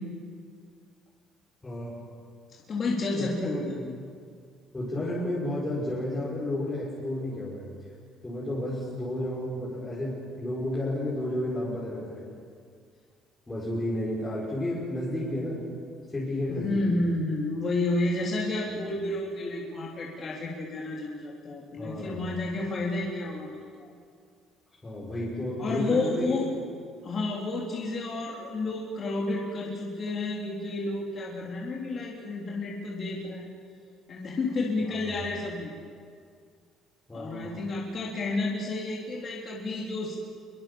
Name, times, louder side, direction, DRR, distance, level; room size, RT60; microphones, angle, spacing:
voice 1, 1.6-2.0 3.1-3.6 4.7-7.6 8.2-12.2 13.5-15.6 16.1-16.9 21.8-22.2 24.8-26.4 34.8-35.1 37.1-37.6, left 1 dB, 15° left, -8 dB, 5.9 m, -32 dB
voice 2, 2.7-4.0 16.5-23.9 25.6-26.5 27.0-33.5 34.1-35.7 37.1-40.2, left 2 dB, 35° left, -3 dB, 3.7 m, -31 dB
27.5 x 22.5 x 7.2 m, 2.2 s
cardioid pair, 160°, 0 cm